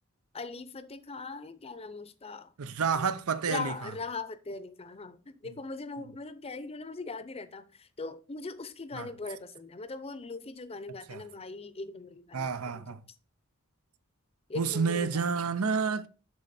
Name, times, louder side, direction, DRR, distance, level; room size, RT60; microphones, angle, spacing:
voice 1, 0.3-2.5 2.9-3.1 3.5-12.8 14.5-15.4, left 3 dB, 25° left, 0.6 m, -40 dB
voice 2, 2.6-3.7 8.9-9.1 11.1-11.2 12.3-13.0 14.6-16.1, right 5 dB, 85° right, 0.7 m, -29 dB
12.0 x 4.3 x 4.2 m
head